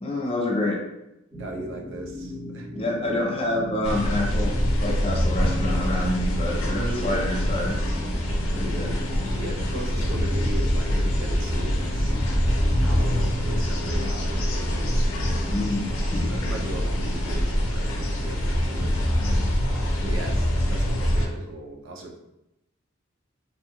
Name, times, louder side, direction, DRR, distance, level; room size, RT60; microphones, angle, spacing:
voice 1, 0.0-0.8 2.7-4.5 4.8-7.7 8.5-8.9 15.5-16.2, left 1 dB, 25° left, -1 dB, 0.4 m, -27 dB
sound 1, 1.3-17.4, left 1 dB, 15° right, 0.8 m, -39 dB
voice 2, 1.4-2.7 6.7-7.3 9.4-12.2 12.8-15.1 16.1-19.0 20.0-22.2, right 2 dB, 65° right, 0 dB, 0.4 m, -37 dB
sound 2, 3.8-21.3, equal, 85° left, 0.5 m, -24 dB
2.6 x 2.3 x 2.8 m, 0.89 s
head